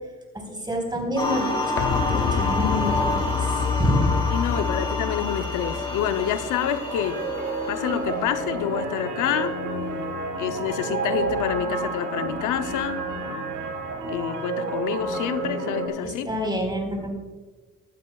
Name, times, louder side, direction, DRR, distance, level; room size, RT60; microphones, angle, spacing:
voice 1, 0.5-1.7 2.1-4.2 16.0-17.1, equal, 15° right, 1 dB, 4.1 m, -27 dB
sound 1, 1.2-9.5, left 2 dB, 15° left, 3.4 m, -29 dB
sound 2, 1.8-7.4 7.7-7.8, left 7 dB, 45° left, 0.5 m, -28 dB
voice 2, 4.3-7.2 7.7-9.5 10.4-13.1 14.1-16.3, left 9 dB, 90° left, 9 dB, 0.7 m, -27 dB
sound 3, 6.6-15.9, right 3 dB, 85° right, 2.4 m, -30 dB
16.0 x 12.0 x 2.3 m, 1.3 s
cardioid pair, 90°, 30 cm